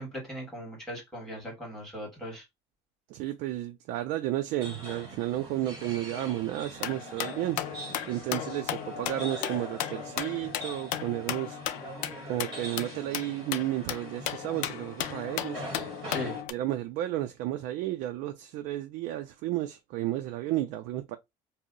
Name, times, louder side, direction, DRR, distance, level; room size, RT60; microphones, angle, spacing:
voice 1, 0.0-2.4 16.1-16.3, equal, 5° left, 1.5 m, -38 dB
voice 2, 3.1-7.6 8.1-11.6 12.3-15.6 16.5-21.2, right 14 dB, 85° right, 0.4 m, -32 dB
sound 1, 4.6-16.4, right 1 dB, 45° right, 1.6 m, -43 dB
sound 2, 6.8-16.5, left 12 dB, 80° left, 0.4 m, -36 dB
2.7 x 2.0 x 3.7 m
cardioid pair, 160°, 13 cm